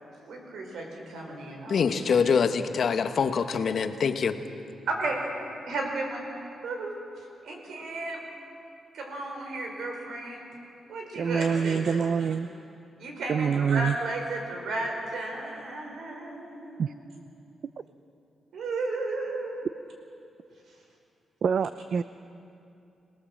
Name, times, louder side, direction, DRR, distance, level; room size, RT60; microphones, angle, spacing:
voice 1, 0.3-2.3 4.8-5.2 5.7-6.2 6.6-8.2 8.9-10.4 10.9-12.3 13.0-17.0 18.5-19.7, right 2 dB, 80° right, 1 dB, 5.0 m, -34 dB
voice 2, 1.7-4.4, left 6 dB, 55° left, 8 dB, 1.2 m, -24 dB
voice 3, 11.2-12.5 13.3-14.0 16.8-16.9 21.4-22.0, right 6 dB, 55° right, 13 dB, 0.4 m, -25 dB
27.0 x 19.0 x 7.5 m, 2.7 s
wide cardioid pair, 130°, 0 cm